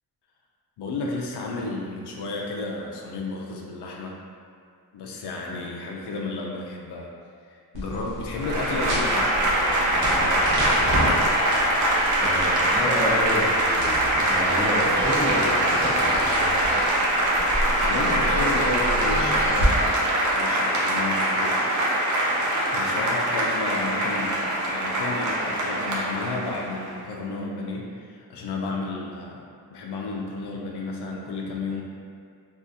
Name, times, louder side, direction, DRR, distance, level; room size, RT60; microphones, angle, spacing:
voice 1, 0.8-4.1 4.9-7.1 7.5-10.6 17.8-20.0 20.3-21.6 22.7-31.8, left 3 dB, 85° left, -2 dB, 0.5 m, -32 dB
sound 1, 7.7-19.7, equal, 70° right, 1.1 m, -31 dB
Applause / Crowd, 8.3-26.9, right 1 dB, 50° right, 0.6 m, -23 dB
voice 2, 12.2-15.8 16.1-16.5, left 1 dB, 5° left, -10 dB, 0.9 m, -30 dB
3.6 x 2.4 x 2.7 m, 2.2 s
wide cardioid pair, 120°, 39 cm